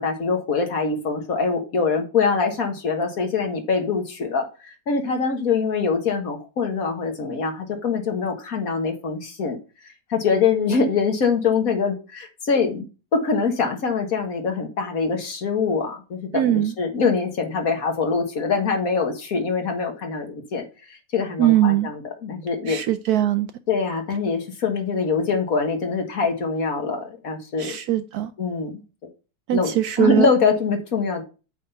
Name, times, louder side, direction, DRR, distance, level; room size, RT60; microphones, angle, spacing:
voice 1, 0.0-9.6 10.1-12.9 13.1-22.8 23.7-27.8 28.4-28.8 29.5-29.7 30.0-31.2, left 5 dB, 55° left, 3 dB, 1.8 m, -24 dB
voice 2, 16.3-16.7 21.4-21.9 22.7-23.5 27.6-28.3 29.5-30.3, right 11 dB, 70° right, 11 dB, 0.9 m, -20 dB
8.5 x 3.7 x 5.6 m, 0.33 s
omnidirectional pair, 1.9 m